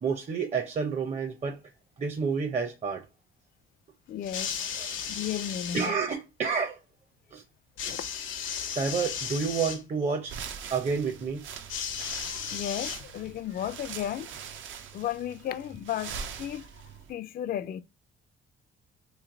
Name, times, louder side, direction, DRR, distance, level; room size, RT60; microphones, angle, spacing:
voice 1, 0.0-1.6 2.0-3.0 5.7-6.8 7.3-7.4 8.8-10.3 10.7-11.4, right 5 dB, 35° right, 0.6 m, -29 dB
voice 2, 4.1-4.7 5.1-5.9 7.8-8.4 12.2-14.3 14.9-17.8, left 10 dB, 50° left, 0.4 m, -35 dB
sound 1, 4.2-5.9 7.8-9.8 11.7-13.4 14.4-14.5, left 7 dB, 85° left, 0.8 m, -35 dB
sound 2, 10.2-17.1, right 7 dB, 75° right, 0.6 m, -42 dB
3.2 x 2.7 x 3.7 m
cardioid pair, 90°, 20 cm